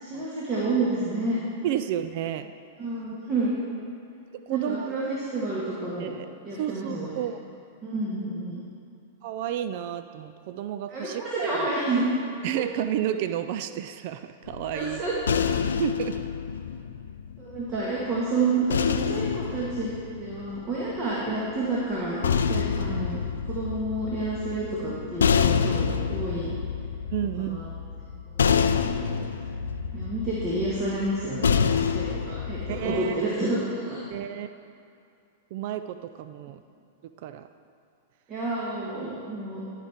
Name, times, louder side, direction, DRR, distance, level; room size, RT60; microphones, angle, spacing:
voice 1, 0.0-1.4 2.8-3.6 4.5-6.1 6.5-7.1 7.8-8.6 10.9-12.1 12.5-12.6 14.7-15.1 17.4-23.2 23.5-26.5 27.4-27.7 28.4-29.1 29.9-34.0 38.3-39.6, right 2 dB, 30° right, -6 dB, 1.7 m, -29 dB
voice 2, 1.6-2.5 4.5-4.9 6.0-7.4 9.2-11.7 12.4-15.0 15.7-16.2 27.1-27.6 28.1-28.2 32.7-33.2 34.1-34.5 35.5-36.6 37.0-37.5, right 11 dB, 50° right, 10 dB, 0.3 m, -31 dB
sound 1, 14.5-17.8 18.7-21.0 21.9-33.0, left 6 dB, 75° left, 0.4 m, -27 dB
13.5 x 5.0 x 3.5 m, 2.4 s
figure-of-eight pair, 100°, 0 cm